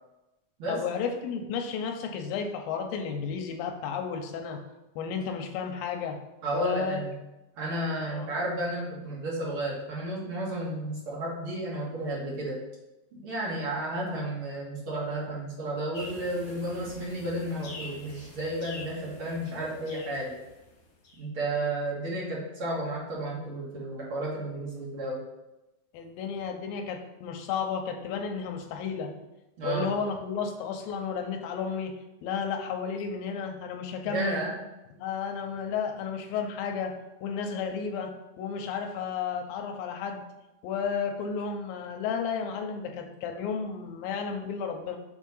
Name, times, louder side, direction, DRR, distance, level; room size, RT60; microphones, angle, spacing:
voice 1, 0.7-4.6 5.0-6.2 6.5-7.0 8.1-8.3 25.9-29.2 29.6-34.4 34.9-40.2 40.6-45.0, left 6 dB, 80° left, 4 dB, 2.5 m, -32 dB
voice 2, 6.4-7.2 7.5-12.6 13.1-20.3 21.2-25.2 29.6-30.0 34.0-34.6, right 1 dB, 45° right, -5 dB, 2.1 m, -32 dB
sound 1, 15.9-21.3, left 2 dB, 60° left, 2.8 m, -46 dB
7.1 x 3.6 x 5.4 m, 0.98 s
omnidirectional pair, 4.1 m